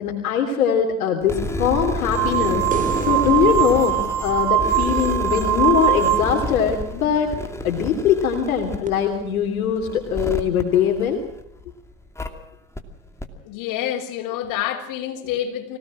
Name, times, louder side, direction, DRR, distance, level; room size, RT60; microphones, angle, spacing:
voice 1, 0.0-2.6 3.1-4.0 4.2-7.3 7.6-11.2, left 7 dB, 80° left, 3 dB, 3.3 m, -21 dB
sound 1, 1.2-11.6 12.2-12.3 12.8-12.9 13.2-13.3, left 1 dB, 5° left, 2.6 m, -30 dB
sound 2, 2.1-6.5, right 12 dB, 55° right, 3.8 m, -22 dB
sound 3, 2.7-6.0 8.9-9.0, right 4 dB, 20° right, 3.1 m, -33 dB
voice 2, 13.4-15.8, left 11 dB, 50° left, 2 dB, 6.3 m, -28 dB
25.0 x 18.0 x 7.6 m, 0.75 s
hypercardioid pair, 100°, 41 cm